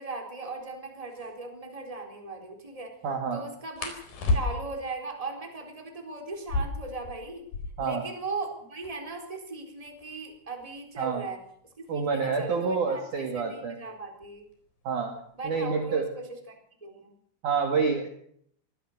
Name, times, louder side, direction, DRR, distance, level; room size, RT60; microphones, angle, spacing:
voice 1, 0.0-2.9 3.3-3.9 4.3-7.4 7.8-11.4 11.8-14.4 15.3-16.5 16.8-17.1, right 3 dB, 10° right, 2 dB, 3.4 m, -38 dB
sound 1, 0.6-0.7 1.1-1.3 3.8-4.9 6.3-8.0 8.3-8.4 8.6-9.2 9.8-12.4 13.4-13.7 14.1-14.5 14.9-15.6, left 3 dB, 50° left, 5.6 m, -33 dB
voice 2, 3.0-3.4 7.8-8.0 11.0-11.2 11.9-13.8 14.8-15.1 15.4-16.1 17.4-18.1, right 5 dB, 50° right, 4 dB, 2.8 m, -28 dB
23.5 x 17.0 x 6.6 m, 0.66 s
omnidirectional pair, 5.5 m